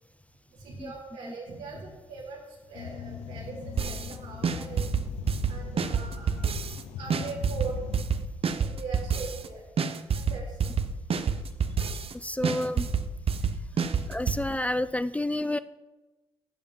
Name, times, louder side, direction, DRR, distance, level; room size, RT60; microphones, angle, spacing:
voice 1, 0.5-2.4 2.7-6.4 7.0-7.9 8.6-9.6 10.1-10.7 13.9-14.0 14.2-14.3, right 4 dB, 80° right, -6 dB, 4.3 m, -40 dB
sound 1, 2.7-8.0, left 8 dB, 75° left, 0.6 m, -41 dB
sound 2, 3.8-4.1 4.4-6.8 7.1-9.5 9.8-12.1 12.4-14.4, right 6 dB, 55° right, 0.8 m, -28 dB
voice 2, 12.1-12.9 14.1-15.6, left 1 dB, 10° left, 14 dB, 0.5 m, -29 dB
11.5 x 7.1 x 5.4 m, 1.1 s
hypercardioid pair, 45°, 12 cm